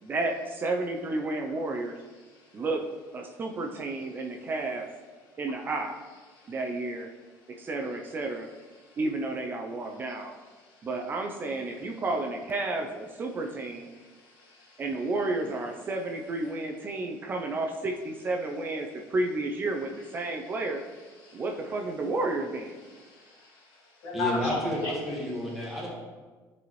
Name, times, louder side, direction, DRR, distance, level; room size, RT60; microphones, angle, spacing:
voice 1, 0.0-2.0 2.5-2.8 3.1-4.8 5.4-6.0 6.5-7.1 7.6-8.5 9.0-10.3 10.8-13.9 14.8-20.8 21.3-22.8, right 2 dB, 30° right, 3 dB, 0.5 m, -31 dB
voice 2, 13.9-14.8 21.2-21.4 22.9-23.8 24.0-24.5 24.8-24.9, left 3 dB, 75° left, -4 dB, 2.0 m, -37 dB
voice 3, 24.1-25.9, equal, 5° right, -5 dB, 1.6 m, -31 dB
9.5 x 4.1 x 3.1 m, 1.4 s
cardioid pair, 150°, 7 cm